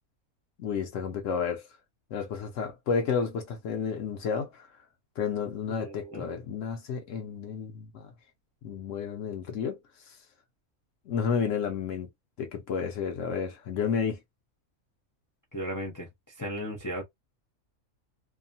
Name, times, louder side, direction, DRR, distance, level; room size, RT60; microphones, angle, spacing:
voice 1, 0.6-1.7 2.1-4.7 5.2-8.1 8.6-9.8 10.1-10.2 11.1-12.1 12.4-14.2, left 6 dB, 70° left, 0.9 m, -31 dB
voice 2, 5.7-6.3 15.5-16.1 16.4-17.0, equal, 20° left, 0.6 m, -36 dB
2.7 x 2.0 x 2.6 m
omnidirectional pair, 1.5 m